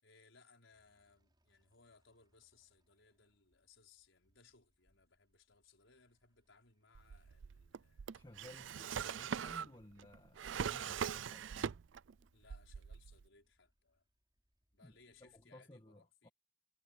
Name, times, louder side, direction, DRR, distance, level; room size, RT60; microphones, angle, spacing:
voice 1, 0.0-8.1 8.6-9.7 12.3-14.0 14.7-16.3, left 4 dB, 75° left, 5.4 m, -67 dB
sound 1, 0.7-15.5, equal, 20° right, 5.8 m, -82 dB
Drawer open or close, 6.9-12.1 12.4-13.3, right 7 dB, 70° right, 0.4 m, -42 dB
voice 2, 8.1-11.8 14.8-16.3, left 1 dB, 25° left, 2.0 m, -58 dB
head